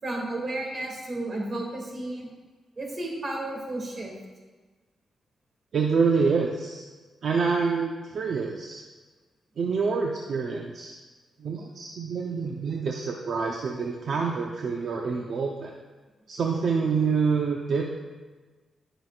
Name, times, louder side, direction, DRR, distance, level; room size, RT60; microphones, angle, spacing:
voice 1, 0.0-2.3 2.8-4.1, right 1 dB, 40° right, -1 dB, 2.5 m, -32 dB
voice 2, 5.7-6.8 7.2-8.8 9.6-10.9 11.4-15.7 16.3-17.8, right 5 dB, 65° right, 0 dB, 0.8 m, -26 dB
18.0 x 6.2 x 2.5 m, 1.3 s
cardioid pair, 110°, 0 cm